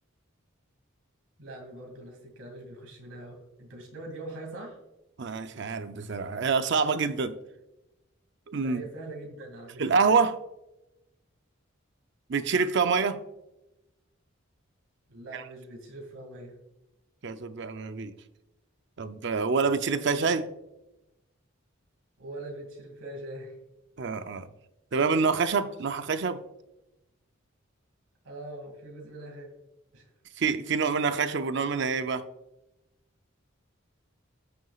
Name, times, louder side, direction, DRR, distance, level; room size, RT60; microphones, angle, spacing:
voice 1, 1.4-4.8 8.6-10.0 15.1-16.5 22.2-23.5 28.2-29.5 29.9-30.1, right 1 dB, 85° right, 2.5 m, -42 dB
voice 2, 5.2-7.4 8.5-8.8 9.8-10.4 12.3-13.2 15.3-15.4 17.2-18.1 19.0-20.5 24.0-24.5 24.9-26.4 30.4-32.2, right 5 dB, 55° right, 0.5 m, -26 dB
16.0 x 6.2 x 2.4 m
head